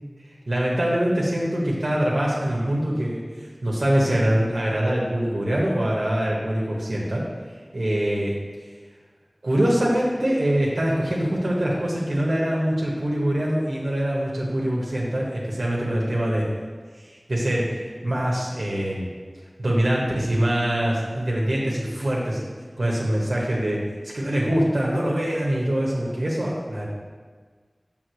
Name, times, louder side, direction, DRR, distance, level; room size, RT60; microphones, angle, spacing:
voice 1, 0.5-7.2 7.7-8.3 9.4-16.5 17.0-19.1 19.6-22.4 22.8-26.9, right 1 dB, 80° right, -4 dB, 1.1 m, -24 dB
6.5 x 3.6 x 6.2 m, 1.5 s
wide cardioid pair, 50°, 0 cm